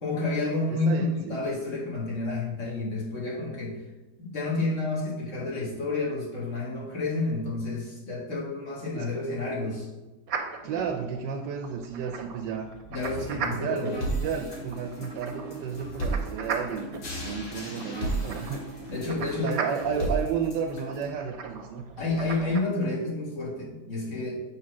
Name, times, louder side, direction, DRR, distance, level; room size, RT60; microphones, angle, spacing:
voice 1, 0.0-3.8 4.2-9.9 12.9-14.0 18.9-19.6 22.0-24.4, left 2 dB, 45° left, -4 dB, 1.7 m, -30 dB
voice 2, 0.7-1.4 8.9-9.1 10.6-12.7 13.3-16.9 17.2-18.6 19.4-21.9, right 6 dB, 85° right, 4 dB, 1.3 m, -32 dB
sound 1, 10.3-22.6, right 5 dB, 60° right, 1.1 m, -39 dB
sound 2, 13.0-21.0, right 1 dB, 75° left, 2.3 m, -35 dB
6.6 x 3.4 x 6.0 m, 1.1 s
omnidirectional pair, 1.9 m